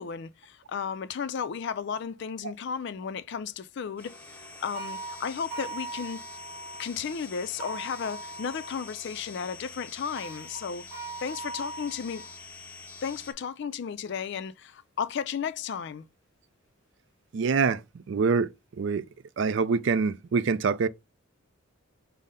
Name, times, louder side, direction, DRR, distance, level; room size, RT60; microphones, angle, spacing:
voice 1, 0.0-6.3 6.8-10.9 11.2-12.3 13.0-16.0, left 6 dB, 55° left, 0.4 m, -34 dB
sound 1, 4.0-13.3, left 3 dB, 10° left, 0.7 m, -46 dB
sound 2, 4.7-6.9 7.6-8.8 10.2-12.3, right 3 dB, 10° right, 1.9 m, -40 dB
voice 2, 17.3-17.8 18.1-18.5 18.8-19.0 19.4-20.9, right 5 dB, 60° right, 0.4 m, -25 dB
5.4 x 2.1 x 3.6 m
head